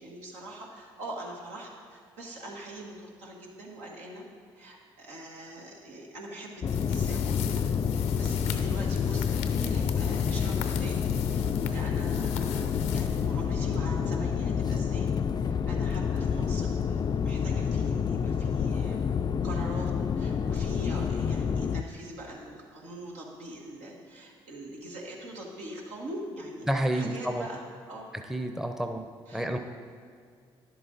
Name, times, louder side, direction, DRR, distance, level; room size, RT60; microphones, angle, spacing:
voice 1, 0.0-4.2 4.5-7.6 7.9-19.0 19.4-27.6 27.9-28.1 29.3-29.5, right 1 dB, 80° right, -2 dB, 1.6 m, -43 dB
sound 1, 6.6-21.8, left 7 dB, 35° left, 0.4 m, -28 dB
sound 2, 6.7-13.8, left 9 dB, 85° left, 0.6 m, -41 dB
voice 2, 26.7-27.5 28.3-29.1 29.3-29.6, right 1 dB, 5° right, 5 dB, 0.7 m, -29 dB
10.5 x 7.9 x 4.0 m, 2.2 s
hypercardioid pair, 55°, 12 cm